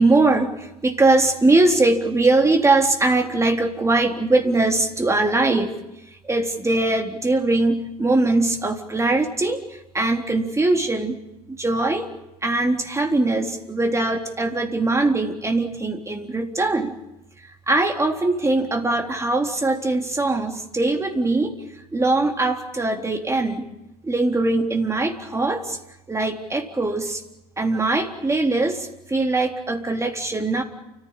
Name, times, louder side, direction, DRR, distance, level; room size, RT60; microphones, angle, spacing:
voice 1, 0.0-5.7 6.2-9.6 9.9-11.2 11.5-12.1 12.4-17.0 17.7-21.5 21.9-23.7 24.0-25.8 26.1-27.2 27.6-30.6, right 2 dB, 15° right, 4 dB, 3.7 m, -21 dB
29.5 x 15.5 x 8.9 m, 0.92 s
figure-of-eight pair, 65°, 19 cm